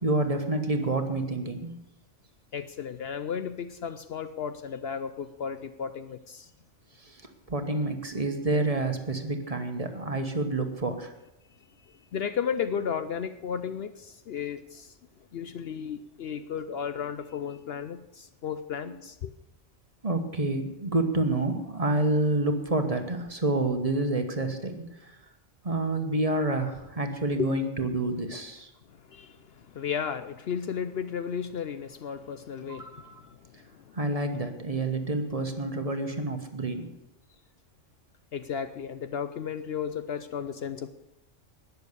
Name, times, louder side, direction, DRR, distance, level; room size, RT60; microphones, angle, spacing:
voice 1, 0.0-1.8 7.0-7.2 7.5-11.1 18.8-18.9 20.0-25.2 25.6-28.7 32.6-33.2 33.9-36.9, right 2 dB, 30° right, 6 dB, 1.2 m, -28 dB
voice 2, 2.5-6.5 11.9-15.0 15.3-19.3 27.3-27.5 28.9-34.0 38.3-40.9, left 7 dB, 60° left, 11 dB, 0.8 m, -34 dB
19.5 x 7.0 x 6.7 m, 0.89 s
omnidirectional pair, 1.3 m